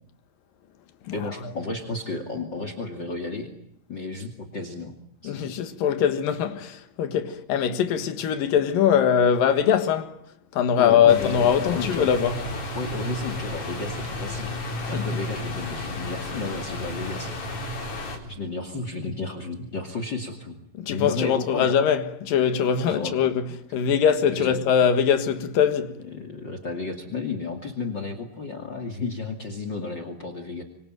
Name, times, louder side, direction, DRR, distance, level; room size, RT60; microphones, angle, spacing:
voice 1, 1.1-3.5 3.9-4.9 5.2-5.5 10.8-12.1 12.7-14.6 14.9-17.7 18.3-20.6 20.9-21.7 22.9-23.2 24.2-24.5 26.1-30.6, left 3 dB, 35° left, 2.8 m, -33 dB
voice 2, 5.2-10.2 10.5-12.4 14.9-15.2 20.8-26.0, left 8 dB, 80° left, 3.3 m, -22 dB
sound 1, 11.1-18.2, left 2 dB, 55° left, 5.3 m, -32 dB
26.5 x 23.5 x 9.1 m
omnidirectional pair, 3.9 m